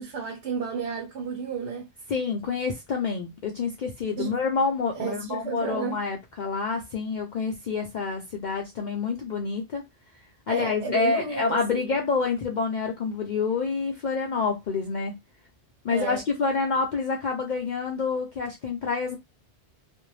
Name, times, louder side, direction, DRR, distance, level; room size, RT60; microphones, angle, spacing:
voice 1, 0.0-1.9 4.2-4.3 5.0-6.0 10.5-11.9 15.9-16.2, right 6 dB, 85° right, 1.0 m, -32 dB
voice 2, 2.1-9.8 10.5-15.2 15.8-19.2, left 5 dB, 60° left, 0.5 m, -27 dB
2.5 x 2.0 x 3.1 m
omnidirectional pair, 1.1 m